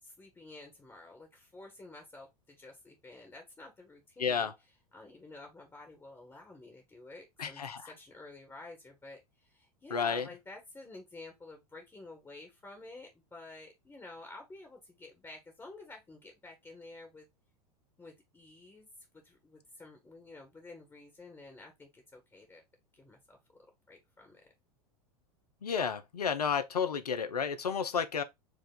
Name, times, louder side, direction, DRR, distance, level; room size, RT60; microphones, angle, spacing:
voice 1, 0.0-4.5 4.9-17.3 18.0-18.9 19.2-22.6 22.9-23.4 23.9-24.5, left 2 dB, 15° left, 1.3 m, -51 dB
voice 2, 4.2-4.5 7.4-7.9 9.9-10.3 25.6-28.2, left 6 dB, 80° left, 0.6 m, -31 dB
4.8 x 2.4 x 3.7 m
figure-of-eight pair, 85°, 20 cm